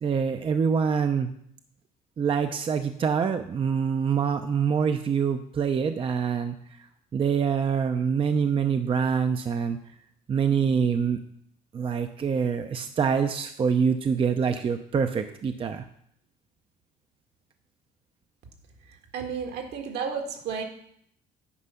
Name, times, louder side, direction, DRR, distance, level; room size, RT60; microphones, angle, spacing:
voice 1, 0.0-1.3 2.2-6.9 7.1-9.8 10.3-11.2 11.7-15.8, right 6 dB, 30° right, 7 dB, 0.6 m, -25 dB
voice 2, 19.1-20.6, right 6 dB, 70° right, 3 dB, 1.7 m, -32 dB
9.9 x 5.0 x 5.7 m, 0.68 s
cardioid pair, 110°, 17 cm